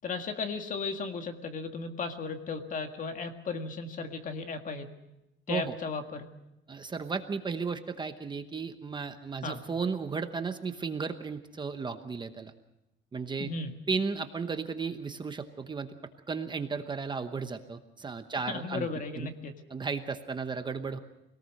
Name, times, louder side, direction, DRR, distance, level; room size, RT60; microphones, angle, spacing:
voice 1, 0.0-4.9 5.5-6.3 9.4-9.6 13.4-13.7 18.5-19.5, left 4 dB, 40° left, 6 dB, 1.9 m, -35 dB
voice 2, 6.7-12.5 13.1-13.5 13.9-15.9 16.3-18.9 19.1-19.3 19.7-21.0, right 5 dB, 20° right, 8 dB, 0.9 m, -34 dB
25.0 x 18.5 x 6.5 m, 0.91 s
cardioid pair, 170°, 21 cm